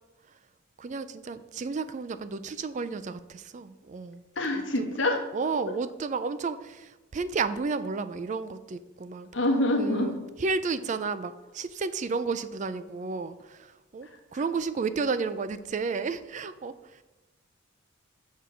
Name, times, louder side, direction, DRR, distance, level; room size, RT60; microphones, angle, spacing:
voice 1, 0.8-4.2 4.5-4.9 5.3-9.3 9.8-10.1 10.4-17.0, right 4 dB, 35° right, 13 dB, 0.4 m, -32 dB
voice 2, 4.4-5.2 9.3-10.3, left 1 dB, 60° left, 4 dB, 1.3 m, -26 dB
7.0 x 4.6 x 6.1 m, 1.1 s
head